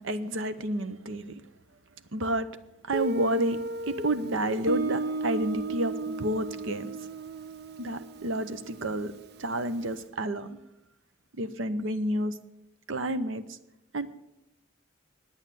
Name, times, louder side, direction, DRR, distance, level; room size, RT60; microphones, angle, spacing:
voice 1, 0.0-1.4 2.1-2.5 2.9-3.6 3.9-6.9 7.8-9.1 9.4-10.6 11.4-12.3 12.9-13.6 13.9-14.1, right 1 dB, 80° right, 12 dB, 0.8 m, -30 dB
Guitar, 2.9-9.6, right 3 dB, 50° right, 0.5 m, -35 dB
9.7 x 8.9 x 7.5 m, 0.88 s
head